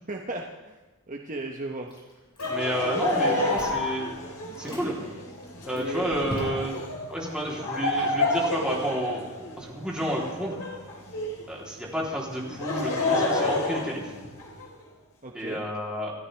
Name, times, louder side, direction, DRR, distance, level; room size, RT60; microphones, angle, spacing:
voice 1, 0.1-0.8 1.1-1.9 4.7-5.0 5.7-6.4 7.5-7.7 15.2-15.7, right 2 dB, 35° right, 1 dB, 1.1 m, -36 dB
Chewing mastication, 1.9-2.8 3.1-3.9 4.4-4.9 5.4-6.9, equal, 25° left, 6.3 m, -40 dB
Laughter, 2.4-11.5 12.3-14.7, left 2 dB, 90° left, 4.4 m, -29 dB
voice 2, 2.5-4.2 4.6-4.9 5.6-6.8 7.1-9.3 9.6-10.6 11.5-14.1 15.3-16.1, right 1 dB, 5° right, -5 dB, 3.4 m, -30 dB
28.5 x 13.5 x 3.5 m, 1.1 s
head